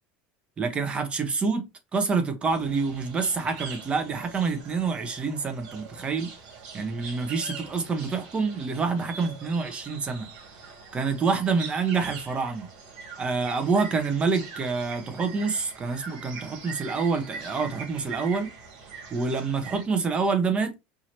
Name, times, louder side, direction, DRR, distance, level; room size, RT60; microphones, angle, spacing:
voice 1, 0.6-1.6 1.9-6.3 6.7-10.3 10.9-12.7 13.2-18.5 19.1-20.7, right 4 dB, 25° right, 1.0 m, -27 dB
sound 1, 2.4-19.8, right 5 dB, 85° right, 2.3 m, -43 dB
4.7 x 2.8 x 3.0 m
supercardioid pair, 135°, 5 cm